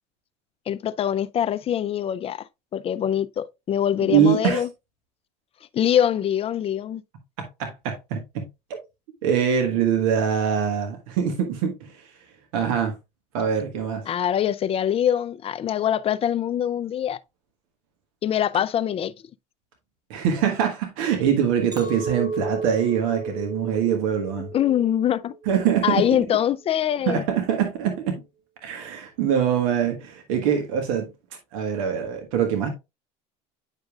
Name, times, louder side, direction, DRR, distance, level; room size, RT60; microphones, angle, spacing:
voice 1, 0.7-4.7 5.7-7.0 14.1-17.2 18.2-19.1 24.5-25.3 25.8-27.2, left 10 dB, 35° left, 0.5 m, -24 dB
voice 2, 4.1-4.6 7.4-8.4 9.2-12.1 12.5-12.9 13.3-14.1 20.1-24.5 25.5-26.1 27.1-28.2 28.6-31.1 31.5-32.7, right 8 dB, 85° right, 1.5 m, -23 dB
Chink clink, 21.7-26.1 26.5-27.0, right 3 dB, 25° right, 1.1 m, -34 dB
9.0 x 5.2 x 2.4 m
supercardioid pair, 100°, 17 cm